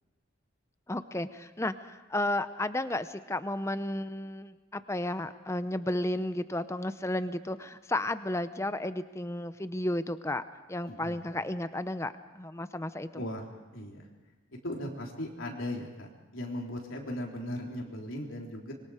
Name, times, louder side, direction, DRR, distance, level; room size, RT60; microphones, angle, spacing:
voice 1, 0.9-10.4 10.7-13.2, left 1 dB, 15° left, 12 dB, 0.7 m, -33 dB
voice 2, 10.9-11.2 13.2-13.5 13.7-14.1 14.6-18.7, left 1 dB, 75° left, 0 dB, 3.7 m, -38 dB
25.5 x 22.5 x 5.0 m, 1.2 s
head